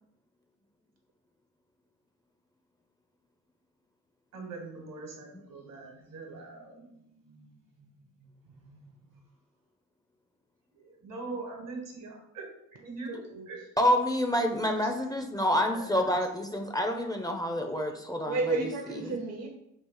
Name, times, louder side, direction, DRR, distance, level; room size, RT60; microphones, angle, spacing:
voice 1, 4.3-9.2 10.7-12.5 12.8-13.6 14.8-15.9 16.3-16.4, right 3 dB, 75° right, 1 dB, 1.2 m, -44 dB
voice 2, 13.1-13.5 18.3-19.5, right 3 dB, 50° right, 2 dB, 0.6 m, -32 dB
voice 3, 13.8-18.7 19.1-19.2, left 1 dB, 10° left, 3 dB, 0.5 m, -28 dB
3.0 x 2.4 x 3.8 m, 0.80 s
supercardioid pair, 50°, 33 cm